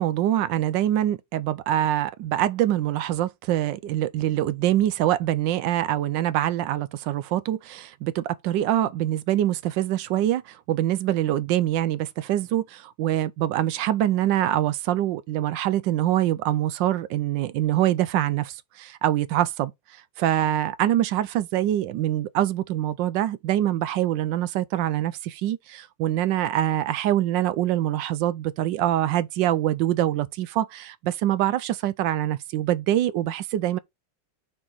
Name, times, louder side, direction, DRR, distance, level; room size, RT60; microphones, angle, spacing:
voice 1, 0.0-19.7 20.2-33.8, right 12 dB, 75° right, 1.1 m, -24 dB
6.1 x 4.6 x 3.9 m
omnidirectional pair, 2.2 m